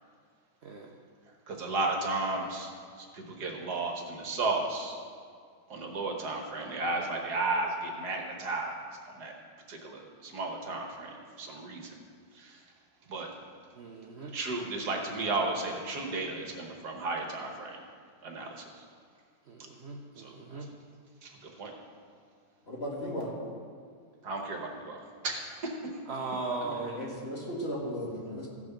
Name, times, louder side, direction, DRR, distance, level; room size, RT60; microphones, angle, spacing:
voice 1, 1.5-2.7 3.0-5.0 5.7-8.8 9.1-9.3 9.7-11.1 11.4-11.9 12.4-12.6 13.1-13.3 14.3-17.8 18.2-18.7 20.2-20.3 21.2-21.7 24.2-25.7, right 3 dB, 65° right, 1 dB, 1.7 m, -34 dB
voice 2, 13.7-14.3 19.5-20.7 23.0-23.1 26.1-27.0, right 3 dB, 50° right, 1 dB, 0.8 m, -38 dB
voice 3, 22.7-23.3 26.6-28.5, equal, 35° left, -4 dB, 2.1 m, -36 dB
15.0 x 6.2 x 5.8 m, 2.1 s
omnidirectional pair, 1.9 m